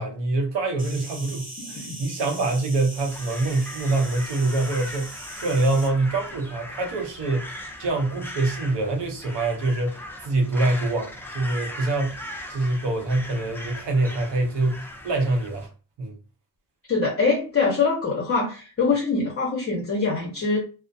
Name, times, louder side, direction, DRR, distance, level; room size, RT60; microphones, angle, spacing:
voice 1, 0.0-7.5 7.8-12.2 12.5-15.7 16.0-16.1, right 2 dB, 85° right, 0.8 m, -25 dB
Insect, 0.8-5.9, right 1 dB, 20° right, 1.0 m, -40 dB
Crow, 3.0-15.7, left 1 dB, 5° left, 0.3 m, -39 dB
voice 2, 16.9-20.6, left 4 dB, 35° left, 0.7 m, -23 dB
2.3 x 2.1 x 2.6 m
cardioid pair, 105°, 41 cm